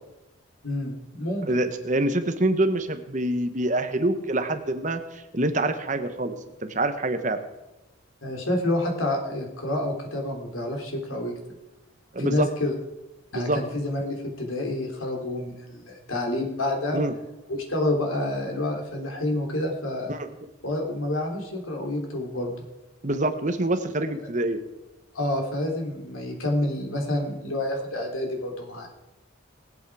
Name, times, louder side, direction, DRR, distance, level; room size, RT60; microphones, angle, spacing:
voice 1, 0.6-1.7 8.2-11.3 12.2-12.7 13.3-17.0 17.7-20.2 20.6-22.6 25.1-28.9, left 1 dB, 90° left, 1 dB, 3.4 m, -28 dB
voice 2, 1.5-6.3 6.6-7.4 12.1-12.5 13.3-13.6 16.9-17.1 20.1-20.3 23.0-24.6, right 1 dB, 35° right, 8 dB, 1.1 m, -25 dB
21.0 x 8.4 x 4.9 m, 0.97 s
head